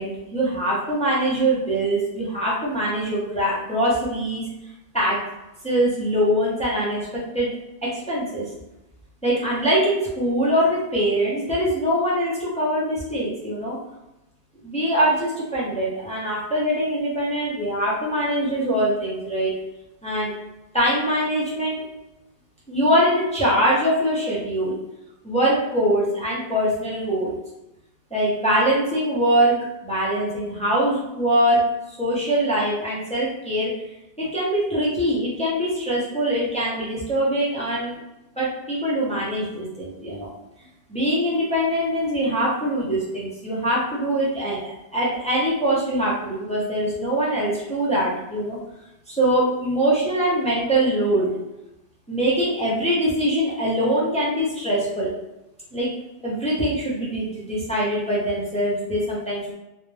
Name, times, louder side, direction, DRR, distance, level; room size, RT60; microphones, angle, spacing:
voice 1, 0.0-4.4 4.9-5.2 5.6-7.0 7.3-7.5 7.9-8.4 9.2-13.8 14.6-19.5 20.0-20.3 20.7-21.8 22.7-24.7 25.2-27.3 28.1-29.5 29.8-31.6 31.9-33.7 34.2-38.0 38.4-40.3 40.9-48.6 49.1-51.3 52.1-55.1 55.7-55.9 56.2-59.5, right 1 dB, 10° left, -7 dB, 0.4 m, -23 dB
2.2 x 2.1 x 3.1 m, 0.96 s
omnidirectional pair, 1.2 m